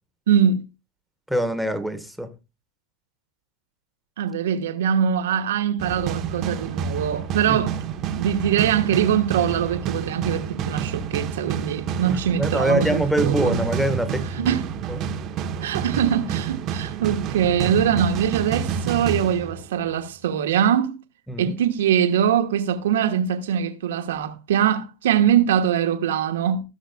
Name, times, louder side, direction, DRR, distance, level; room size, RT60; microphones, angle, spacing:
voice 1, 0.3-0.6 4.2-7.7 8.1-13.6 14.3-14.6 15.6-20.9 21.4-26.6, right 9 dB, 75° right, 1.2 m, -22 dB
voice 2, 1.3-2.3 12.1-14.6 14.9-15.1 21.3-21.6, right 1 dB, ahead, 1.2 m, -24 dB
sound 1, 5.8-20.0, right 7 dB, 45° right, 1.0 m, -29 dB
16.0 x 6.5 x 2.3 m
hypercardioid pair, 90°, 0 cm